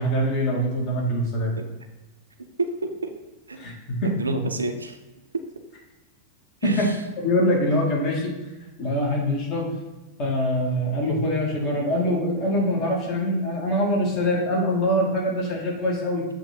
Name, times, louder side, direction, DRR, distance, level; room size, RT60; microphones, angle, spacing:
voice 1, 0.0-1.5 3.6-4.1 6.6-6.8 7.2-8.3 8.8-9.7 10.2-16.3, equal, 40° left, -2 dB, 1.9 m, -24 dB
voice 2, 2.6-3.1 3.5-3.6 4.0-5.0 6.6-6.9, right 2 dB, 75° right, 6 dB, 0.6 m, -28 dB
7.2 x 2.9 x 5.1 m, 1.1 s
figure-of-eight pair, 90°, 0 cm